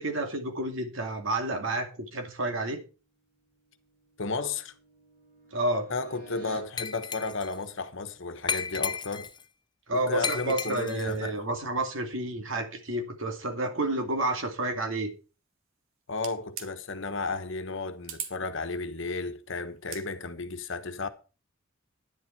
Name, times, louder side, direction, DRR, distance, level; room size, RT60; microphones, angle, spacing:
voice 1, 0.0-2.8 5.5-5.9 9.9-15.1, right 2 dB, 70° right, 2.5 m, -30 dB
sound 1, 3.6-6.8, right 2 dB, 45° right, 5.6 m, -52 dB
voice 2, 4.2-4.7 5.9-9.3 9.9-11.4 16.1-21.1, left 3 dB, 70° left, 1.2 m, -33 dB
Glass, 6.8-7.6 8.5-9.4 10.2-11.1, left 6 dB, 20° left, 0.6 m, -33 dB
sound 2, 16.2-16.7 18.0-18.4 19.8-20.1, right 8 dB, 90° right, 1.6 m, -38 dB
10.5 x 10.5 x 4.6 m
head